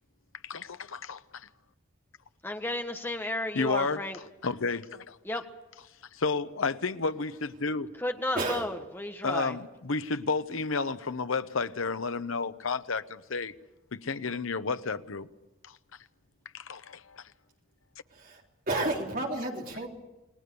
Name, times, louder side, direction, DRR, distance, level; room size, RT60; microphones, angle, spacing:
voice 1, 0.4-1.5 3.5-4.0 4.4-5.2 6.1-7.9 9.2-13.5 13.9-15.3 15.6-15.8 16.5-17.3, left 4 dB, 80° left, 0.9 m, -31 dB
voice 2, 2.4-4.2 5.2-5.4 8.0-9.5, left 1 dB, 10° left, 1.4 m, -33 dB
voice 3, 8.3-8.7 18.1-18.4 18.7-19.9, right 2 dB, 40° right, 3.8 m, -31 dB
29.0 x 20.0 x 7.0 m
head